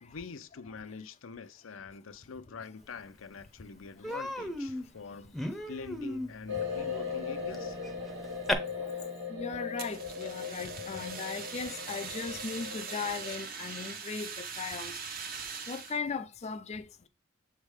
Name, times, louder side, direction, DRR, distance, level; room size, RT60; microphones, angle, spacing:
voice 1, 0.0-5.4 5.7-7.8, left 5 dB, 85° left, 0.6 m, -45 dB
Human voice, 3.0-3.1 3.4-3.6 4.0-8.5, left 1 dB, ahead, 0.7 m, -37 dB
sound 1, 6.5-13.4, left 5 dB, 65° right, 1.4 m, -38 dB
voice 2, 9.3-15.0 15.7-17.1, left 5 dB, 35° left, 0.4 m, -38 dB
Fire, 9.8-16.0, right 5 dB, 45° right, 0.9 m, -41 dB
7.3 x 3.4 x 4.8 m
head